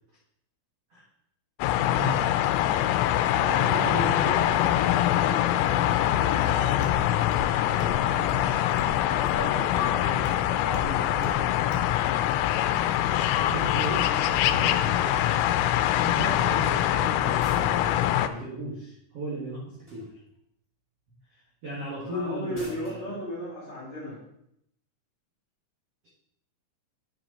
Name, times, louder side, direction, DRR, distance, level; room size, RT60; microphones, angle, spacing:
sound 1, 1.6-18.3, left 12 dB, 85° left, 3.1 m, -24 dB
voice 1, 1.9-2.2 3.6-7.1 9.2-10.0 10.4-11.6 22.0-24.2, equal, 45° left, -6 dB, 2.9 m, -37 dB
voice 2, 3.0-4.2 9.9-10.2 13.3-15.4 16.0-20.1 21.3-23.2, right 1 dB, 70° right, -5 dB, 1.4 m, -36 dB
sound 2, 6.8-7.0 7.3-7.5 7.8-8.0 8.3-8.5 8.8-9.0 9.3-9.4 9.8-9.9 10.3-10.4 10.7-10.9 11.2-11.4 11.7-11.9, left 3 dB, 65° left, 3.0 m, -38 dB
sound 3, 17.4-18.0 19.8-20.3 22.5-23.0, left 1 dB, 5° right, 2.9 m, -45 dB
9.8 x 6.1 x 4.1 m, 0.75 s
omnidirectional pair, 5.6 m